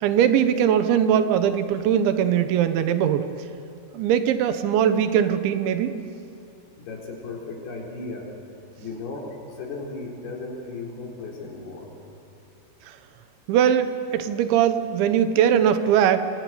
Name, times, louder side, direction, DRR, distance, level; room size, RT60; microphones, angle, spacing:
voice 1, 0.0-3.3 3.9-6.0 13.5-16.2, right 9 dB, 80° right, 9 dB, 3.4 m, -21 dB
voice 2, 6.8-8.3 8.8-11.9, left 3 dB, 60° left, -1 dB, 6.0 m, -36 dB
25.5 x 24.5 x 9.4 m, 2.6 s
omnidirectional pair, 5.3 m